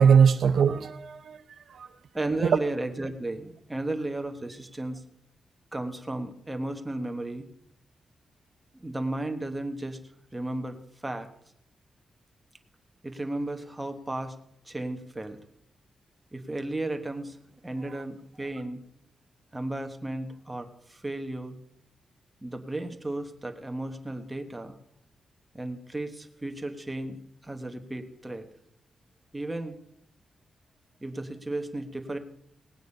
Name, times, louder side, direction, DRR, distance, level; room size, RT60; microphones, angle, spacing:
voice 1, 0.0-1.9 2.4-2.6 17.8-18.0, right 7 dB, 60° right, 9 dB, 0.6 m, -22 dB
voice 2, 2.1-5.0 5.7-7.5 8.7-10.0 10.3-10.8 11.0-11.3 13.0-14.3 14.6-15.4 16.3-17.4 17.6-18.8 19.5-21.6 22.4-24.8 25.5-28.5 29.3-29.8 31.0-32.2, right 2 dB, 10° right, 5 dB, 1.1 m, -34 dB
18.0 x 9.2 x 5.3 m, 0.74 s
wide cardioid pair, 175°, 0 cm